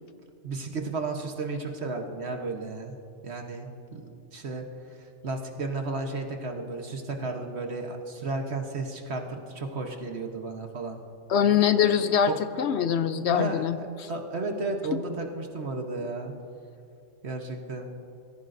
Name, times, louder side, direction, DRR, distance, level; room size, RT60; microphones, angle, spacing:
voice 1, 0.4-3.0 3.2-4.0 4.3-4.6 5.0-11.0 12.3-12.4 13.3-13.6 14.1-16.3 17.2-17.9, right 3 dB, 60° right, 3 dB, 1.4 m, -33 dB
voice 2, 11.3-14.1, left 8 dB, 70° left, 11 dB, 0.8 m, -23 dB
22.5 x 15.0 x 2.6 m, 2.6 s
omnidirectional pair, 1.3 m